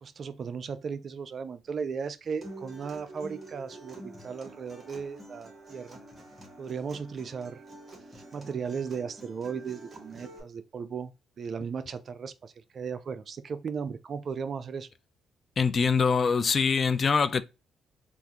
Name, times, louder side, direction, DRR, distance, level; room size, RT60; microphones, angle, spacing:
voice 1, 0.0-6.0 6.6-7.6 8.1-11.1 11.4-14.9, right 6 dB, 50° right, 0.4 m, -36 dB
Acoustic guitar, 2.4-10.4, right 1 dB, 20° right, 1.4 m, -47 dB
voice 2, 15.6-17.4, left 5 dB, 45° left, 0.3 m, -24 dB
3.4 x 2.4 x 2.8 m
cardioid pair, 80°, 0 cm